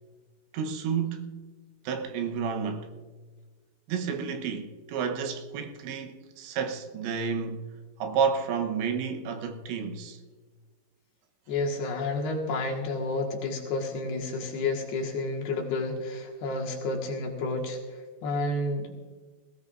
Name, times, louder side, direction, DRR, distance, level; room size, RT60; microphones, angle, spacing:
voice 1, 0.5-1.3 1.8-2.9 3.9-7.7 8.0-10.2, right 6 dB, 85° right, 3.3 m, -30 dB
voice 2, 11.5-18.9, left 2 dB, 70° left, 3.5 m, -30 dB
20.0 x 17.0 x 2.5 m
omnidirectional pair, 5.0 m